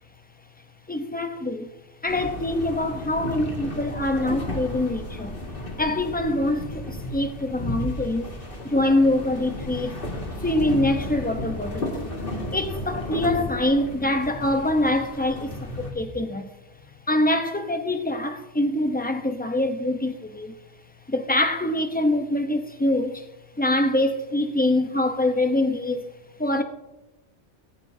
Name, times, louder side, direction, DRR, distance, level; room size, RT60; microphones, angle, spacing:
voice 1, 0.9-1.7 2.0-5.4 5.8-8.3 8.6-10.0 10.4-12.0 12.5-16.5 17.1-20.5 21.1-23.3 23.6-26.1 26.4-26.6, left 1 dB, 10° left, 0.7 m, -24 dB
sound 1, 2.1-15.9, left 2 dB, 50° left, 2.3 m, -33 dB
16.0 x 15.0 x 2.8 m
omnidirectional pair, 1.2 m